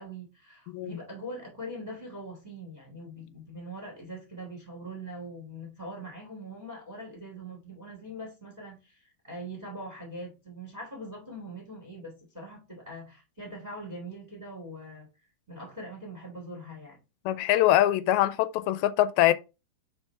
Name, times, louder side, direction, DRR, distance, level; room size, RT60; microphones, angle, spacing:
voice 1, 0.0-15.1 15.5-17.0, right 1 dB, 20° right, 1.2 m, -42 dB
voice 2, 0.7-1.0 17.3-19.3, left 14 dB, 90° left, 2.4 m, -23 dB
4.7 x 4.6 x 4.4 m
omnidirectional pair, 4.2 m